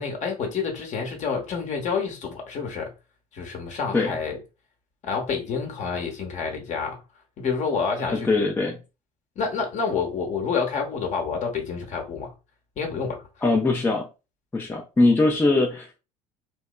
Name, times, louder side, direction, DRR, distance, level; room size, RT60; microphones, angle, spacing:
voice 1, 0.0-2.9 3.3-4.4 5.0-7.0 7.4-8.3 9.4-12.3 12.8-13.3, left 5 dB, 40° left, 0.9 m, -28 dB
voice 2, 8.1-8.8 13.4-14.1 14.5-16.0, left 2 dB, 10° left, 0.4 m, -21 dB
2.8 x 2.2 x 2.2 m
figure-of-eight pair, 60°, 19 cm